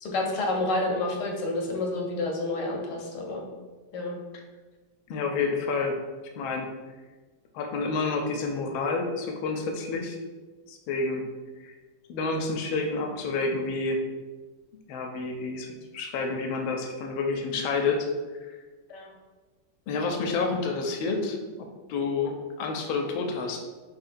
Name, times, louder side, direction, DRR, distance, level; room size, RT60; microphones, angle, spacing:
voice 1, 0.0-3.5 3.9-4.2 18.9-19.1, left 2 dB, 70° left, 1 dB, 1.2 m, -29 dB
voice 2, 5.1-6.0 6.4-6.7 7.5-10.2 10.7-11.2 11.6-11.7 12.1-14.0 14.9-15.7 15.9-18.1 18.4-18.5 19.9-21.4 21.9-23.6, left 4 dB, 90° left, 3 dB, 1.4 m, -29 dB
5.6 x 3.3 x 2.5 m, 1.3 s
omnidirectional pair, 2.1 m